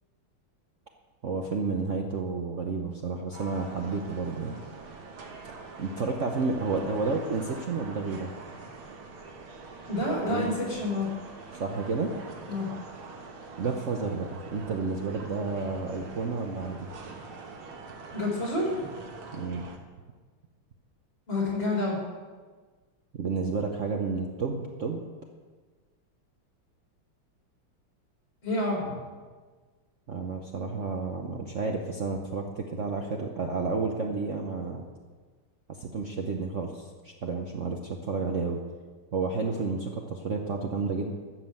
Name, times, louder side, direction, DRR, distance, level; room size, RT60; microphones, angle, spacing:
voice 1, 1.2-4.5 5.8-8.3 10.3-10.5 11.5-12.2 13.6-16.9 19.3-19.7 23.2-25.0 30.1-34.8 35.8-38.6 39.1-41.1, right 4 dB, 50° right, 2 dB, 0.9 m, -31 dB
sound 1, 3.3-19.8, right 4 dB, 80° right, 2.2 m, -44 dB
voice 2, 9.9-11.1 12.5-12.7 18.1-18.9 21.3-22.0 28.4-29.0, left 2 dB, 65° left, -4 dB, 5.2 m, -28 dB
12.5 x 7.6 x 7.6 m, 1.4 s
omnidirectional pair, 2.3 m